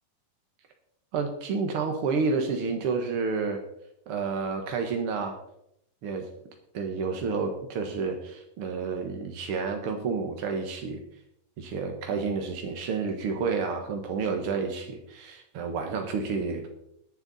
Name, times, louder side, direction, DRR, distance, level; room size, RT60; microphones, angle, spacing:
voice 1, 1.1-3.6 4.1-5.4 6.0-6.3 6.7-11.0 11.6-16.7, right 4 dB, 65° right, 4 dB, 1.4 m, -30 dB
21.5 x 7.4 x 4.1 m, 0.77 s
omnidirectional pair, 4.2 m